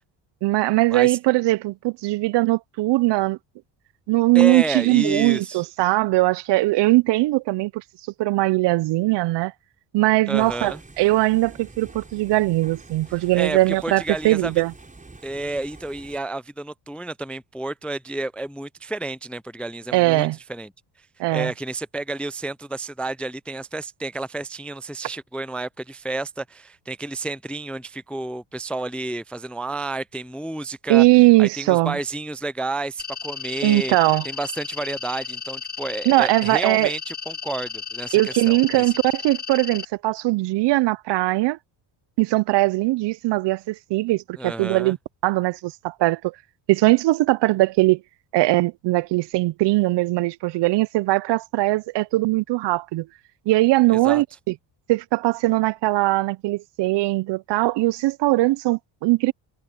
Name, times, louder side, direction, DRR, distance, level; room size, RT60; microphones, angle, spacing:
voice 1, 0.4-3.4 4.1-7.8 8.2-9.5 9.9-14.7 19.9-20.4 21.2-21.5 30.9-32.0 33.6-34.2 36.1-36.9 38.1-41.6 42.2-45.0 45.2-46.3 46.7-48.0 48.3-53.1 53.5-54.5 54.9-59.3, right 20 dB, 60° right, 0.6 m, -20 dB
voice 2, 4.3-5.6 10.3-10.8 13.1-14.5 15.2-20.7 21.3-31.1 31.4-34.0 34.2-38.9 44.4-44.9 53.9-54.2, right 2 dB, 5° left, 0.3 m, -30 dB
sound 1, 10.3-16.2, right 3 dB, 15° right, 5.6 m, -46 dB
sound 2, 33.0-39.8, left 7 dB, 20° left, 0.8 m, -34 dB
cardioid pair, 95°, 47 cm